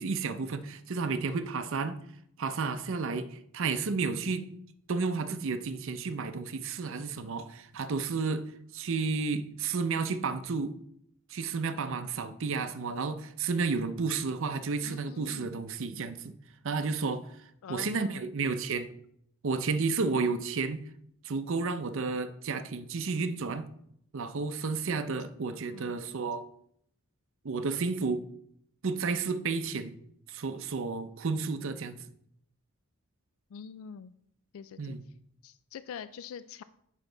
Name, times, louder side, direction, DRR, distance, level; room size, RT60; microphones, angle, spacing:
voice 1, 0.0-2.0 2.4-4.5 4.9-10.8 11.3-16.3 16.6-17.4 17.7-18.9 19.4-20.8 21.2-23.7 24.1-26.5 27.4-28.3 28.8-29.9 30.3-32.0 34.8-35.0, right 4 dB, 60° right, 0.6 m, -32 dB
voice 2, 14.8-15.5 17.6-18.2 25.7-26.0 33.5-34.1 34.5-35.0 35.4-36.6, left 7 dB, 65° left, 0.3 m, -44 dB
8.2 x 5.8 x 3.9 m
head